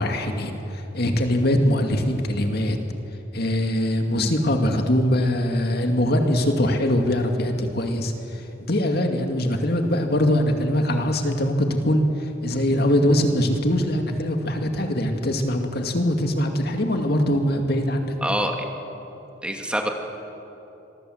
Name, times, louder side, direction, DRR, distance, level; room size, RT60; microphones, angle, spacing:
voice 1, 0.0-2.8 3.3-8.1 8.6-12.0 12.4-18.1, left 1 dB, 60° left, 4 dB, 2.3 m, -22 dB
voice 2, 18.2-18.7 19.4-19.9, equal, 5° right, 3 dB, 2.3 m, -26 dB
26.5 x 22.5 x 8.0 m, 2.9 s
head